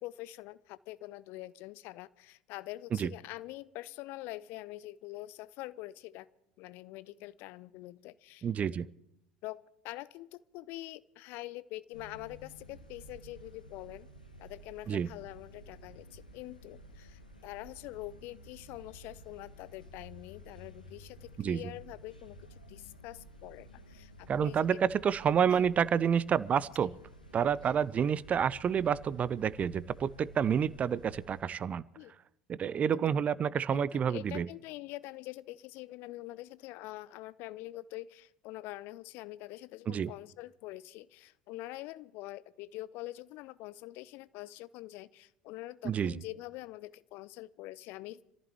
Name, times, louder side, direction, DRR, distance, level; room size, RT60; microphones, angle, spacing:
voice 1, 0.0-6.3 6.6-8.8 9.4-14.1 14.4-22.4 22.7-24.7 25.5-25.7 26.8-26.9 32.0-32.1 32.9-33.1 33.7-48.2, left 17 dB, 55° left, 19 dB, 0.6 m, -45 dB
voice 2, 8.4-8.9 14.9-15.1 21.4-21.6 24.3-26.9 27.3-31.8 32.5-34.5 39.9-40.1 45.8-46.2, right 8 dB, 30° right, 21 dB, 0.5 m, -29 dB
sound 1, 11.9-31.4, equal, 90° left, 1.4 m, -53 dB
27.0 x 14.5 x 3.1 m, 0.81 s
figure-of-eight pair, 65°, 4 cm